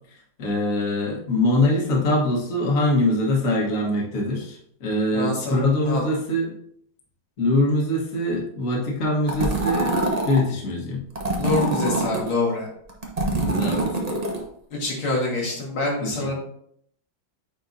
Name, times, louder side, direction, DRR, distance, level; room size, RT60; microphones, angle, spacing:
voice 1, 0.4-6.5 7.4-9.9 10.3-11.0 13.6-13.8 16.0-16.1, left 1 dB, 45° left, -2 dB, 1.7 m, -23 dB
voice 2, 5.1-6.0 11.4-12.7 14.8-16.3, left 2 dB, 85° left, -3 dB, 2.8 m, -26 dB
sound 1, 9.3-10.4 11.2-12.3 12.9-14.4, right 2 dB, 30° right, 0.7 m, -24 dB
9.1 x 4.5 x 2.7 m, 0.67 s
omnidirectional pair, 2.2 m